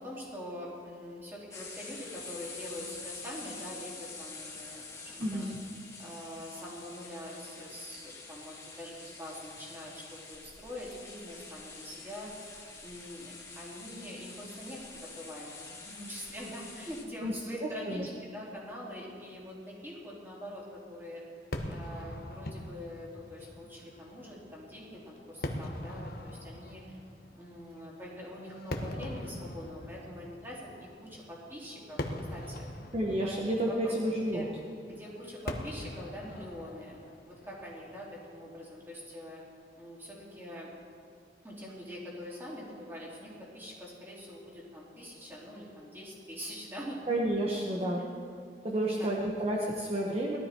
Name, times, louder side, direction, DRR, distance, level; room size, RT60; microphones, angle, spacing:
voice 1, 0.0-5.5 6.0-21.2 21.7-27.0 27.3-30.7 31.0-32.7 33.2-33.4 33.6-33.9 34.3-34.4 34.8-37.0 37.2-39.4 39.8-40.7 41.4-47.0 47.8-48.1 48.7-49.3, equal, 15° right, -5 dB, 3.8 m, -44 dB
sound 1, 1.5-17.0, left 4 dB, 20° left, 2.1 m, -47 dB
voice 2, 5.2-5.6 17.2-18.1 32.9-34.5 47.1-48.0 48.6-50.4, right 1 dB, 35° right, -3 dB, 1.3 m, -31 dB
Fireworks, 21.5-38.9, left 1 dB, 60° left, 1.2 m, -43 dB
19.5 x 13.0 x 4.6 m, 2.2 s
head